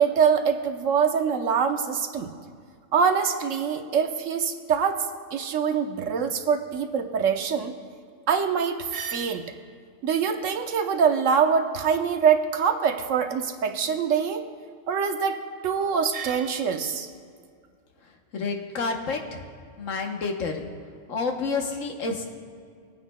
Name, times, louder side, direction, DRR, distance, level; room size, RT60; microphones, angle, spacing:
voice 1, 0.0-2.3 2.9-5.1 5.3-7.7 8.3-9.5 10.0-14.5 14.9-17.1, right 6 dB, 75° right, 6 dB, 1.1 m, -24 dB
voice 2, 18.3-19.4 19.8-20.6 21.1-22.3, left 4 dB, 80° left, 3 dB, 1.4 m, -29 dB
22.0 x 9.6 x 2.2 m, 2.2 s
omnidirectional pair, 1.3 m